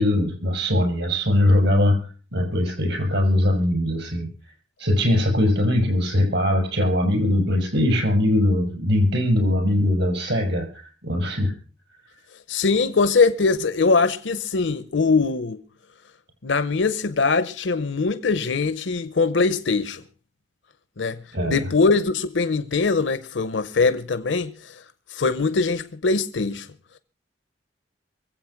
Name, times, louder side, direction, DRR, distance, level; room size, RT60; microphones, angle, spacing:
voice 1, 0.0-4.3 4.8-11.5 21.3-21.6, left 1 dB, 70° right, 7.1 m, -21 dB
voice 2, 12.5-15.6 16.4-20.0 21.0-24.8 25.1-26.7, left 4 dB, 90° left, 0.8 m, -22 dB
24.0 x 8.3 x 5.8 m
head